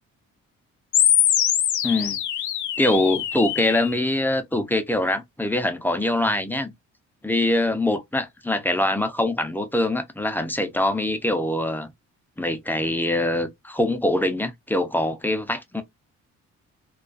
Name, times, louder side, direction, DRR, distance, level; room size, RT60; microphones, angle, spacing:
sound 1, 0.9-3.9, left 10 dB, 75° left, 0.6 m, -23 dB
voice 1, 1.8-2.2 2.8-6.7 7.2-11.9 12.4-15.8, left 1 dB, 5° left, 0.4 m, -23 dB
2.3 x 2.2 x 2.4 m
cardioid pair, 90°, 30 cm